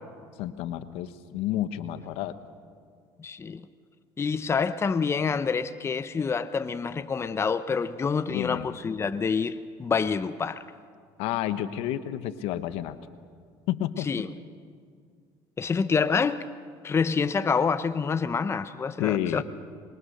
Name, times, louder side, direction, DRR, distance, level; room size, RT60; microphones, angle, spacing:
voice 1, 0.4-2.3 8.3-8.7 11.2-13.0 13.7-14.1 19.0-19.4, left 12 dB, 75° left, 1.2 m, -30 dB
voice 2, 3.2-3.6 4.2-10.6 14.1-14.3 15.6-16.4 16.8-19.4, left 5 dB, 25° left, 0.8 m, -27 dB
26.0 x 22.5 x 6.7 m
supercardioid pair, 95°, 10 cm